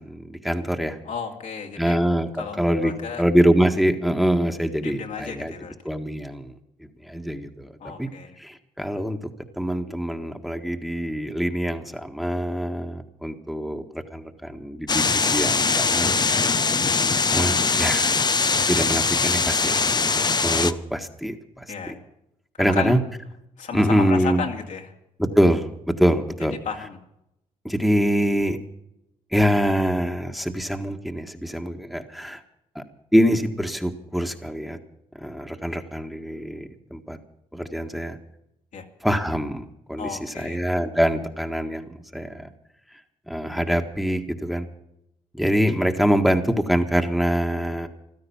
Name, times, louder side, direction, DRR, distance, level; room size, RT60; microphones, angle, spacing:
voice 1, 0.0-1.0 1.8-2.9 3.2-5.5 5.8-6.5 7.0-8.1 8.4-9.2 9.6-16.2 17.3-18.2 18.7-21.9 22.6-23.0 23.7-24.4 25.2-26.5 27.6-28.6 29.3-32.4 32.7-32.8 33.1-34.8 35.1-37.2 37.5-38.2 39.0-42.5 43.3-44.7 45.3-47.9, equal, ahead, 4 dB, 1.7 m, -24 dB
voice 2, 1.0-1.9 2.4-3.2 4.8-5.7 7.8-8.4 21.7-22.0 22.6-23.0 23.6-24.9 26.6-27.0 38.7-38.9 40.0-40.6, left 6 dB, 70° left, 2 dB, 2.6 m, -33 dB
sound 1, 14.9-20.7, left 4 dB, 30° left, 0.8 m, -21 dB
15.0 x 12.5 x 7.2 m, 0.80 s
cardioid pair, 70°, 13 cm